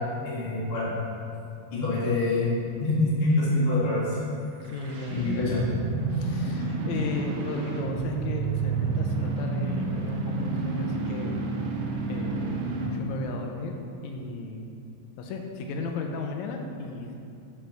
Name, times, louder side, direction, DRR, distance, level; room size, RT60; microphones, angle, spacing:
voice 1, 0.2-0.9 1.7-2.5 2.8-4.0 5.1-5.6, left 2 dB, 50° left, -9 dB, 2.3 m, -25 dB
sound 1, 4.5-13.1, right 3 dB, 70° right, 1.5 m, -30 dB
voice 2, 4.6-5.5 6.1-11.4 12.1-13.8 14.0-14.7 15.2-17.2, left 3 dB, 80° left, 3 dB, 2.0 m, -35 dB
6.1 x 5.5 x 5.7 m, 2.6 s
omnidirectional pair, 3.3 m